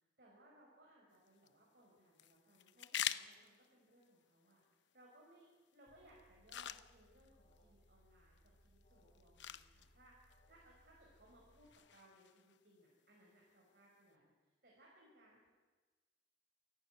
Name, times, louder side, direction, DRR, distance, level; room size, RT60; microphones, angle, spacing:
voice 1, 0.2-15.5, right 1 dB, 55° right, -4 dB, 6.0 m, -67 dB
sound 1, 1.1-14.1, left 10 dB, 75° left, 0.7 m, -50 dB
Alarm, 5.9-11.7, equal, 30° left, 5.6 m, -69 dB
28.0 x 11.5 x 9.6 m, 1.3 s
head